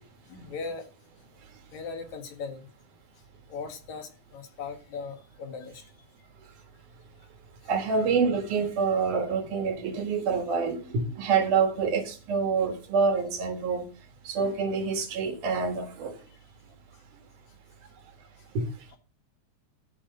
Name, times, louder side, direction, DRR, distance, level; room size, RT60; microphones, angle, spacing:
voice 1, 0.3-0.9 1.7-2.7 3.5-5.8 18.9-19.0, left 5 dB, 70° left, 3.0 m, -38 dB
voice 2, 7.7-13.9 14.2-16.2 18.5-18.8, right 5 dB, 85° right, 3.4 m, -27 dB
13.5 x 4.9 x 6.6 m
omnidirectional pair, 3.5 m